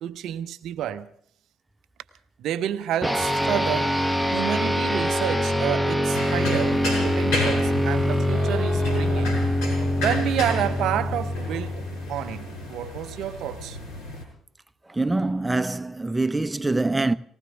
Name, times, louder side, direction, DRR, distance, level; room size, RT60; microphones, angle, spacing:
voice 1, 0.0-1.1 2.4-4.0 4.3-9.4 10.0-13.8, right 11 dB, 60° right, 0.6 m, -29 dB
sound 1, 3.0-12.7, left 1 dB, 5° left, 1.2 m, -24 dB
sound 2, 6.1-14.2, left 1 dB, 70° left, 5.5 m, -33 dB
voice 2, 14.9-17.1, right 2 dB, 15° right, 0.7 m, -24 dB
19.0 x 18.5 x 3.6 m
figure-of-eight pair, 45°, 0 cm